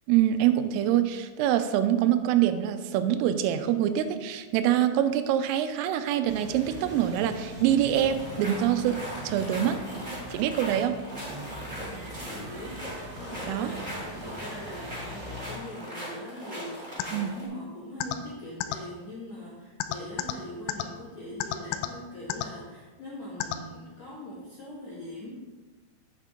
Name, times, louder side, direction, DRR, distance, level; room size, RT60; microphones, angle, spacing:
voice 1, 0.1-9.0 9.2-9.8 10.3-11.0 13.5-13.7 17.1-17.3, right 11 dB, 90° right, 9 dB, 3.2 m, -25 dB
sound 1, 6.2-15.6, right 1 dB, 65° right, 1.0 m, -42 dB
sound 2, 7.9-17.5, equal, 15° right, 1.6 m, -40 dB
voice 2, 11.8-25.3, left 1 dB, 70° left, -8 dB, 1.6 m, -42 dB
sound 3, 17.0-17.1 18.0-18.2 18.6-18.8 19.8-20.3 20.7-20.8 21.4-21.9 22.3-22.5 23.4-23.6, left 15 dB, 85° left, 3.1 m, -28 dB
8.3 x 8.1 x 3.7 m, 1.3 s
omnidirectional pair, 5.8 m